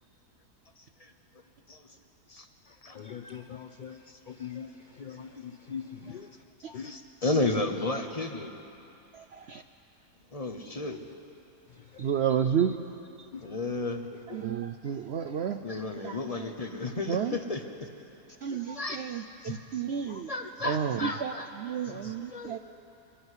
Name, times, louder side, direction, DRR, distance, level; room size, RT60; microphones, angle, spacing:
voice 1, 2.9-4.0 4.3-6.3 6.7-6.9 10.9-11.0 11.8-12.2 13.3-13.4 14.3-14.4 18.5-18.6 20.1-20.2 21.9-22.1, left 7 dB, 85° left, 6 dB, 0.4 m, -42 dB
voice 2, 6.7-8.5 10.3-11.0 13.4-14.0 15.6-17.9 18.7-19.1 19.4-19.6 20.3-21.5 21.8-22.6, left 2 dB, 25° left, 5 dB, 1.0 m, -33 dB
voice 3, 12.0-12.8 14.3-15.6 16.0-16.5 17.1-17.4 18.4-20.3 20.6-22.6, right 8 dB, 65° right, 7 dB, 0.6 m, -31 dB
22.0 x 12.5 x 9.7 m, 2.8 s
omnidirectional pair, 1.7 m